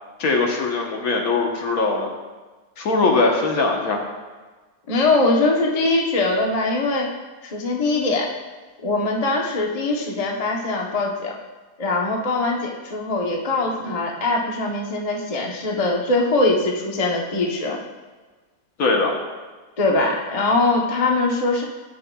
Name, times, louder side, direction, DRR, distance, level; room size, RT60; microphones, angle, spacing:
voice 1, 0.2-2.1 2.8-4.0 13.9-14.0 18.8-19.1, left 3 dB, 60° left, 1 dB, 1.4 m, -21 dB
voice 2, 4.9-7.1 7.4-8.3 8.8-11.3 11.8-17.8 19.8-21.6, left 2 dB, 35° left, 0 dB, 0.6 m, -22 dB
14.5 x 5.6 x 2.3 m, 1.3 s
omnidirectional pair, 1.8 m